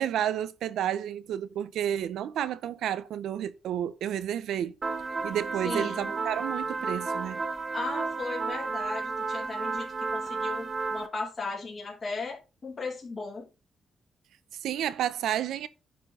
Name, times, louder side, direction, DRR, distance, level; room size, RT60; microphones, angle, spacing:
voice 1, 0.0-4.7 5.2-7.4 14.6-15.7, right 10 dB, 90° right, 0.8 m, -31 dB
sound 1, 4.8-11.1, right 4 dB, 35° right, 1.3 m, -32 dB
voice 2, 5.6-6.1 7.7-12.4 12.6-13.5, left 3 dB, 35° left, 3.2 m, -36 dB
10.5 x 4.5 x 5.4 m
cardioid pair, 100°, 0 cm